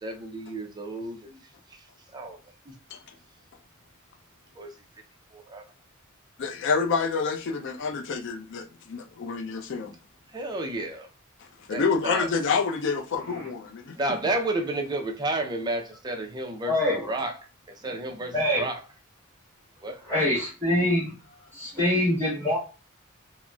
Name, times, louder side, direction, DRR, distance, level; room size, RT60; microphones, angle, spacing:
voice 1, 0.0-1.9 2.1-2.4 2.7-2.8 4.6-4.7 5.3-5.6 10.3-11.1 11.7-12.3 13.9-16.8 17.1-17.4 17.7-18.8 19.8-20.0, right 2 dB, 20° right, 0.4 m, -31 dB
voice 2, 6.4-9.9 11.4-14.1, left 5 dB, 60° left, 0.4 m, -28 dB
voice 3, 16.7-17.1 18.3-18.6 20.1-21.1 21.5-22.6, left 1 dB, 10° left, 1.2 m, -24 dB
3.7 x 2.0 x 2.2 m
head